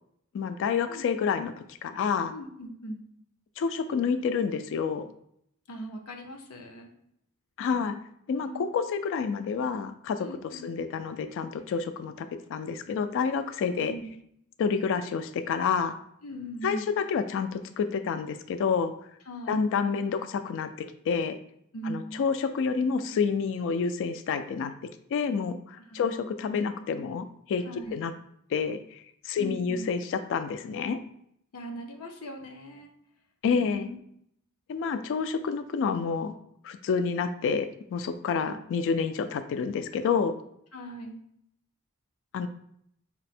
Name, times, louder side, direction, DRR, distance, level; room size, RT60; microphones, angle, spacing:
voice 1, 0.3-1.5 1.8-2.3 3.6-5.1 7.6-8.0 8.3-13.9 14.6-15.9 16.6-18.9 19.5-21.4 21.9-24.7 25.1-27.6 27.9-28.1 28.5-28.8 29.2-31.0 33.4-33.9 34.7-36.3 36.6-40.3 42.3-42.5, left 6 dB, 60° left, 10 dB, 0.3 m, -28 dB
voice 2, 2.3-3.0 5.7-6.9 8.3-8.6 10.2-10.7 13.7-14.1 16.2-16.9 19.3-19.7 21.7-22.2 25.9-26.2 27.6-28.0 29.4-29.9 31.5-32.9 33.6-34.0 40.7-41.2, right 1 dB, 75° left, 4 dB, 0.7 m, -39 dB
4.2 x 2.1 x 4.2 m, 0.72 s
head